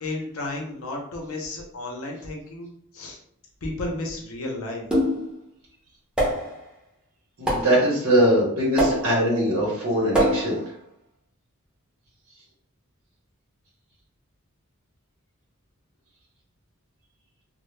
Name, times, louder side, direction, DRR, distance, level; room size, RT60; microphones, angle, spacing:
voice 1, 0.0-3.2 3.6-4.8, left 2 dB, 70° left, 0 dB, 0.6 m, -33 dB
sound 1, 4.9-5.4 6.2-6.6 7.5-7.9 8.8-9.3 10.1-10.7, equal, 5° right, 0.5 m, -24 dB
voice 2, 7.4-10.6, equal, 80° right, -5 dB, 0.8 m, -21 dB
2.1 x 2.0 x 3.0 m, 0.67 s
head